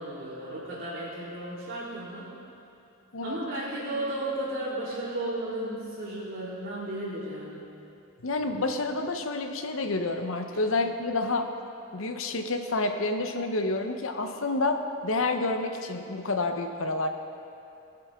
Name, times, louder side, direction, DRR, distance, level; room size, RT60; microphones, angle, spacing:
voice 1, 0.0-2.3 3.2-7.6, right 1 dB, 70° right, -13 dB, 3.2 m, -34 dB
voice 2, 8.2-11.5 11.9-17.1, left 2 dB, 75° left, 6 dB, 0.8 m, -29 dB
22.0 x 7.8 x 3.6 m, 2.7 s
head